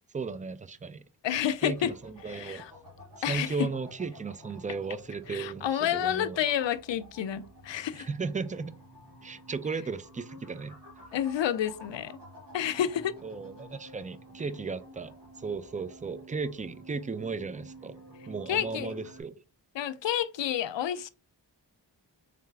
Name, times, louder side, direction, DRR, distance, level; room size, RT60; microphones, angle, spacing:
voice 1, 0.1-1.0 1.6-2.6 3.2-6.4 7.9-8.8 9.2-10.8 13.2-18.0 18.3-19.3, right 4 dB, 20° right, 0.4 m, -35 dB
voice 2, 1.2-1.9 2.3-2.7 3.2-3.5 5.3-8.1 11.1-12.2 12.5-13.1 18.5-18.9 19.8-21.1, left 10 dB, 70° left, 0.5 m, -29 dB
sound 1, 1.7-19.2, equal, 65° right, 2.0 m, -51 dB
3.8 x 3.3 x 3.3 m
cardioid pair, 40°, 45 cm